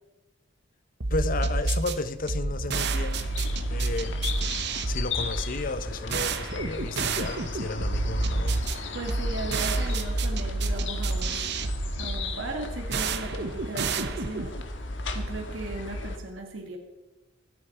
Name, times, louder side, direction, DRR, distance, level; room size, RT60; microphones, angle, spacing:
sound 1, 1.0-14.6, right 3 dB, 60° right, 1.0 m, -29 dB
voice 1, 1.1-3.3 3.7-4.2 4.9-8.6, left 3 dB, 45° left, 0.8 m, -33 dB
sound 2, 3.1-16.2, left 3 dB, 65° left, 1.5 m, -35 dB
voice 2, 8.9-11.5 12.0-14.5 15.1-16.8, right 2 dB, 80° right, 2.0 m, -37 dB
24.5 x 8.7 x 4.4 m
head